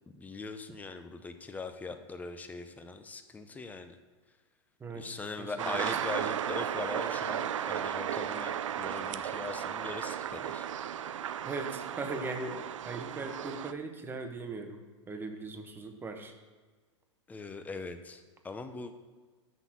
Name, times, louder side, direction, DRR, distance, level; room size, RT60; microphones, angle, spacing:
voice 1, 0.1-4.0 4.9-10.7 17.3-18.9, left 3 dB, 10° left, 8 dB, 0.6 m, -41 dB
voice 2, 5.4-6.2 11.4-16.3, right 3 dB, 15° right, 5 dB, 0.9 m, -40 dB
sound 1, 5.6-13.7, right 9 dB, 85° right, 0.5 m, -35 dB
6.1 x 5.8 x 7.1 m, 1.4 s
hypercardioid pair, 125°, 16 cm